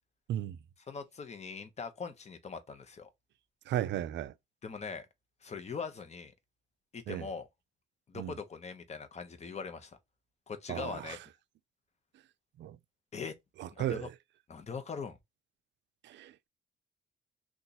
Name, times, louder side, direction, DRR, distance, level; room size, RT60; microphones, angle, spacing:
voice 1, 0.9-3.1 4.6-5.1 5.4-6.3 6.9-7.5 8.1-10.0 10.5-11.2 13.1-13.3 13.7-14.1 14.5-15.2, left 5 dB, 35° left, 0.8 m, -41 dB
voice 2, 3.7-4.3 7.1-7.3 8.1-8.3 10.7-11.2 12.6-12.8 13.6-14.1 16.0-16.5, right 12 dB, 65° right, 0.4 m, -35 dB
2.9 x 2.4 x 3.9 m
cardioid pair, 90°, 20 cm